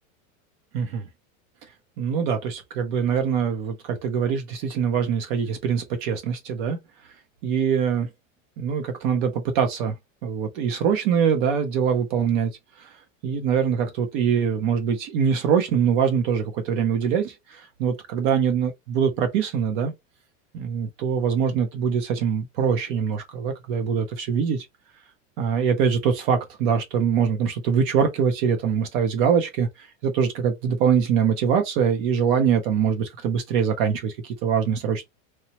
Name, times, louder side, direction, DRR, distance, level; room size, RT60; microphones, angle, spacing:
voice 1, 0.7-1.1 2.0-6.8 7.4-8.1 8.6-9.9 10.2-12.9 13.2-19.9 20.5-24.7 25.4-35.0, right 7 dB, 40° right, 0.5 m, -23 dB
2.9 x 2.0 x 2.8 m
supercardioid pair, 165°, 40 cm